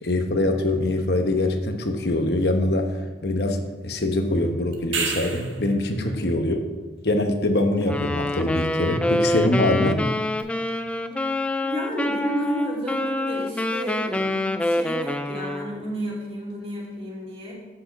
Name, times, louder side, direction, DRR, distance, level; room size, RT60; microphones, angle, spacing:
voice 1, 0.0-3.6 3.8-6.6 7.0-10.0, left 1 dB, 55° left, 5 dB, 1.0 m, -23 dB
sound 1, 4.7-5.7 10.4-10.5, right 5 dB, 85° right, 1.5 m, -28 dB
voice 2, 5.8-6.2 11.6-17.5, equal, 30° right, -4 dB, 2.4 m, -32 dB
Wind instrument woodwind instrument, 7.8-15.8, left 1 dB, 5° left, 0.3 m, -26 dB
7.7 x 6.3 x 7.3 m, 1.2 s
head